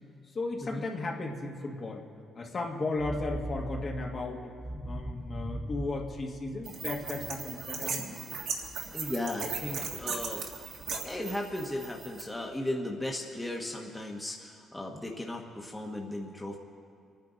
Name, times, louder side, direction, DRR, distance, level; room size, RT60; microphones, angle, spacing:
voice 1, 0.3-2.0 2.3-4.5 4.8-8.0, left 2 dB, 45° left, 0 dB, 1.8 m, -35 dB
sound 1, 3.0-7.0, right 1 dB, 15° right, 1.4 m, -39 dB
sound 2, 6.7-12.2, right 5 dB, 75° right, 1.8 m, -37 dB
voice 2, 8.9-10.4 11.0-16.6, left 1 dB, 10° left, 0 dB, 1.2 m, -36 dB
27.0 x 10.0 x 4.0 m, 2.3 s
cardioid pair, 90°, 0 cm